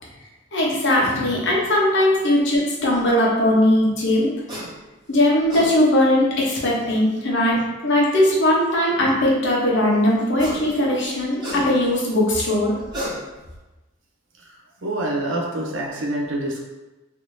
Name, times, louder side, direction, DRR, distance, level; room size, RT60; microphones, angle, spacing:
voice 1, 0.5-4.3 5.1-12.7, left 1 dB, 65° left, -3 dB, 0.9 m, -19 dB
sound 1, 4.5-4.7 5.3-5.7 7.1-7.2 10.2-10.7 11.0-12.0 12.7-13.6, equal, 25° right, 1.1 m, -32 dB
voice 2, 14.8-16.7, right 1 dB, 70° right, -1 dB, 0.7 m, -26 dB
3.3 x 2.7 x 3.0 m, 1.1 s
head